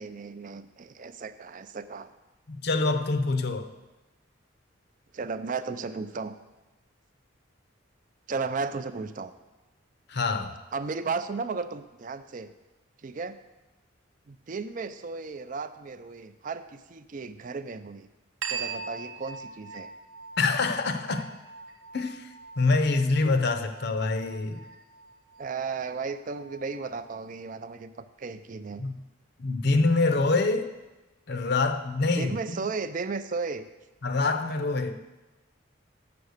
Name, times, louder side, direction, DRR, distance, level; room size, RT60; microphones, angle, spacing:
voice 1, 0.0-2.1 5.1-6.3 8.3-9.3 10.7-12.5 13.0-13.4 14.3-18.1 18.5-19.9 25.4-27.9 28.2-28.8 32.1-33.7, right 4 dB, 40° right, 12 dB, 0.4 m, -34 dB
voice 2, 2.5-3.7 10.1-10.6 20.4-21.3 21.9-24.6 28.8-28.9 29.4-30.7 31.3-32.6 34.0-35.0, left 3 dB, 55° left, 7 dB, 0.6 m, -25 dB
sound 1, 18.4-27.4, right 5 dB, 80° right, 0.7 m, -42 dB
7.1 x 6.9 x 6.5 m, 1.1 s
head